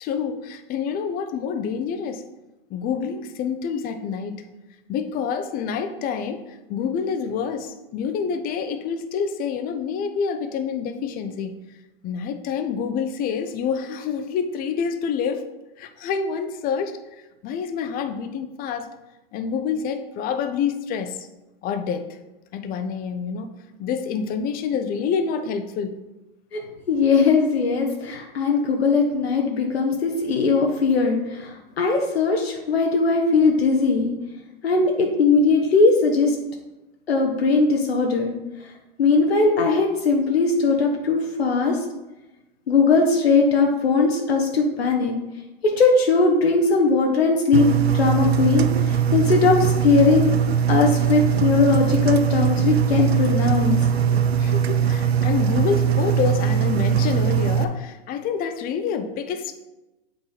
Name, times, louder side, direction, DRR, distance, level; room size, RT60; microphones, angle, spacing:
voice 1, 0.0-2.2 2.7-4.4 4.9-11.6 12.0-15.5 15.8-17.0 17.4-18.9 19.3-21.3 21.6-22.2 22.5-23.5 23.8-26.0 54.4-59.5, left 6 dB, 30° left, 8 dB, 0.7 m, -27 dB
voice 2, 26.9-34.1 34.6-36.4 37.1-38.3 39.0-41.8 42.7-45.1 45.6-47.7 47.9-50.3 50.7-53.8 54.1-54.3, left 4 dB, 85° left, 1 dB, 1.0 m, -19 dB
Engine, 47.5-57.6, right 8 dB, 90° right, 0.6 m, -21 dB
8.2 x 3.9 x 4.0 m, 1.0 s
hypercardioid pair, 110°, 30 cm